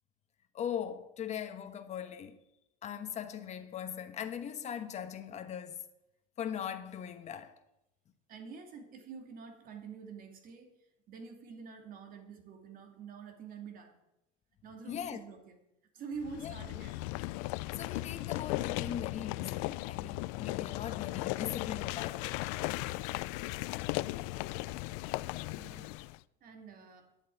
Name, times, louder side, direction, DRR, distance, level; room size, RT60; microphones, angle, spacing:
voice 1, 0.5-2.4 2.8-5.8 6.4-7.5 14.9-15.2 16.4-16.5 17.8-22.4, left 9 dB, 35° left, 1.3 m, -40 dB
voice 2, 8.3-10.8 11.1-14.0 14.6-15.6 15.9-17.1 25.5-26.0 26.4-27.1, right 5 dB, 45° right, 2.6 m, -47 dB
sound 1, 16.2-26.2, left 20 dB, 70° left, 0.5 m, -37 dB
10.5 x 7.9 x 9.3 m
supercardioid pair, 135°, 21 cm